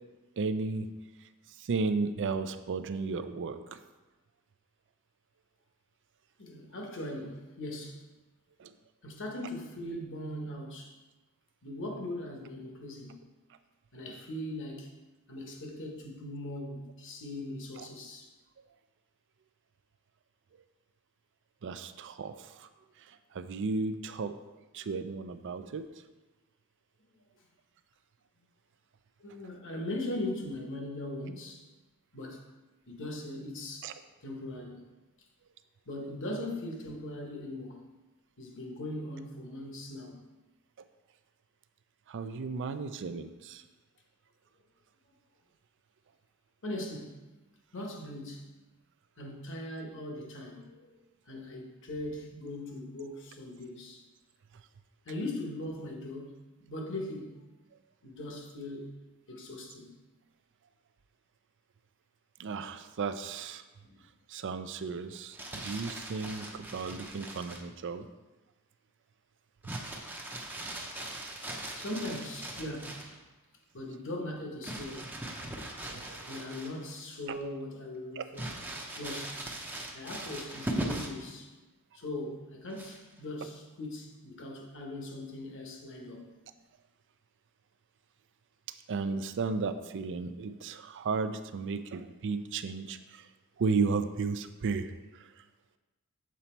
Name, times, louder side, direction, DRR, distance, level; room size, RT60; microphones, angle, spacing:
voice 1, 0.4-0.9 1.6-3.8 8.6-8.7 17.8-17.9 21.6-22.7 23.3-24.3 24.7-25.8 33.8-33.9 42.1-43.6 62.4-63.6 64.3-68.1 75.9-76.0 77.3-77.4 78.2-78.3 88.9-93.3 93.6-94.9 95.2-95.3, right 4 dB, 55° right, 0.4 m, -34 dB
voice 2, 6.4-8.0 9.0-11.0 11.6-13.2 13.9-14.9 15.3-18.3 27.4-27.5 29.2-31.7 32.1-32.4 32.9-33.9 34.2-34.9 35.9-37.9 38.4-40.2 46.6-47.2 47.7-48.5 49.2-51.0 51.3-54.1 55.0-56.4 56.7-57.5 58.0-58.9 59.3-59.9 63.8-64.0 71.7-73.1 73.7-75.2 76.3-78.5 78.9-79.4 79.9-81.5 81.9-86.3, left 1 dB, 60° left, 1.1 m, -40 dB
Crumpling crinkling, 65.1-67.7 69.6-73.2 74.6-77.0 77.4-77.5 78.3-81.3 82.7-83.2, right 1 dB, 10° right, 0.6 m, -40 dB
7.4 x 4.0 x 4.4 m
head